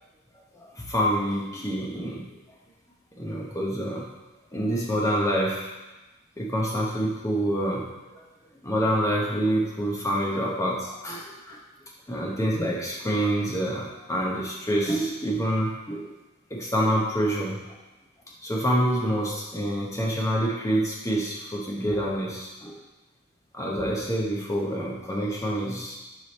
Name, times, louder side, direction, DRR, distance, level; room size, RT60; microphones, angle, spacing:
voice 1, 0.3-2.2 3.1-4.1 4.5-5.7 6.4-8.2 8.6-11.6 12.1-16.1 16.5-17.6 18.4-22.8 23.5-26.0, equal, 15° left, -3 dB, 1.0 m, -27 dB
5.0 x 4.8 x 4.2 m, 1.1 s
head